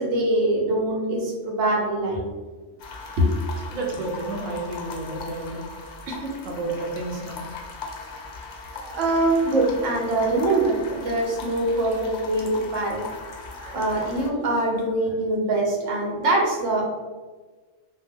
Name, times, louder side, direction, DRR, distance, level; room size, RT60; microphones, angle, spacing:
voice 1, 0.0-2.3 3.2-3.3 6.1-6.3 8.7-13.1 13.5-16.8, right 2 dB, 85° right, 0 dB, 1.0 m, -23 dB
sound 1, 2.8-14.3, left 4 dB, 60° left, 0.5 m, -39 dB
voice 2, 3.7-5.6 6.4-7.4 13.7-13.8, right 2 dB, 50° right, -2 dB, 0.7 m, -31 dB
2.4 x 2.2 x 3.3 m, 1.3 s
omnidirectional pair, 1.3 m